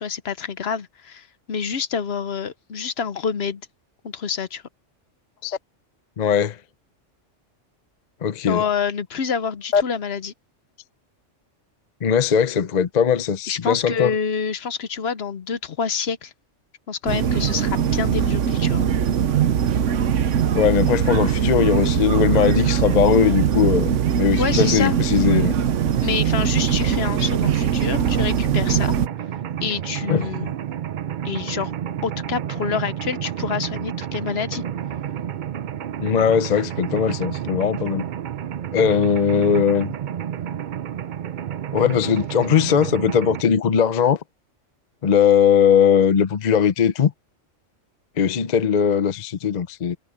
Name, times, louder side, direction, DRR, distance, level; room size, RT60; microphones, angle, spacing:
voice 1, 0.0-3.6 4.0-4.6 8.4-10.3 13.5-16.3 16.9-18.9 24.4-25.0 26.0-28.9 29.6-30.5 31.2-31.7 32.0-34.6, left 6 dB, 60° left, 1.0 m, -27 dB
voice 2, 6.2-6.6 8.2-8.6 9.7-9.8 12.0-14.2 20.5-25.5 30.1-30.3 36.0-38.1 38.7-39.9 41.7-44.2 45.0-47.1 48.2-50.0, left 7 dB, 45° left, 0.7 m, -19 dB
sound 1, 17.1-29.1, right 8 dB, 75° right, 1.2 m, -21 dB
Mechanisms, 26.6-43.4, right 10 dB, 55° right, 0.6 m, -30 dB
omnidirectional pair, 1.3 m